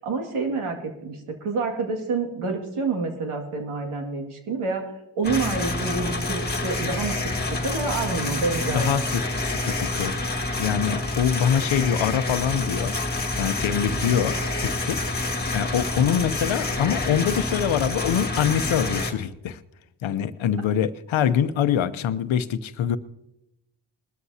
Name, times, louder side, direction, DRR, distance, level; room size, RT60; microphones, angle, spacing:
voice 1, 0.0-4.8 5.2-9.0, right 4 dB, 80° right, 3 dB, 2.3 m, -28 dB
sound 1, 5.2-19.1, left 2 dB, 20° left, 1.8 m, -28 dB
voice 2, 8.7-10.1 10.6-13.0 13.4-15.0 15.5-19.6 20.0-23.0, left 9 dB, 70° left, 12 dB, 0.8 m, -24 dB
20.0 x 13.0 x 2.8 m, 0.86 s
cardioid pair, 75°, 49 cm